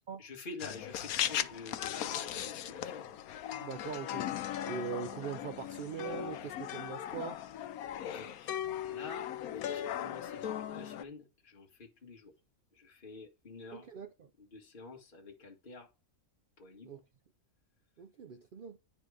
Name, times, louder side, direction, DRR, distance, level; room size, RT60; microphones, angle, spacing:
voice 1, 0.2-3.1 8.1-9.3 9.6-12.3 12.7-13.9 14.4-15.9 16.6-17.0, left 3 dB, 35° left, 1.6 m, -48 dB
sound 1, 0.6-11.0, left 11 dB, 80° left, 1.1 m, -38 dB
voice 2, 3.6-7.5 13.7-14.3 16.8-17.0 18.0-18.8, right 6 dB, 65° right, 0.5 m, -42 dB
9.6 x 4.5 x 4.7 m
omnidirectional pair, 1.5 m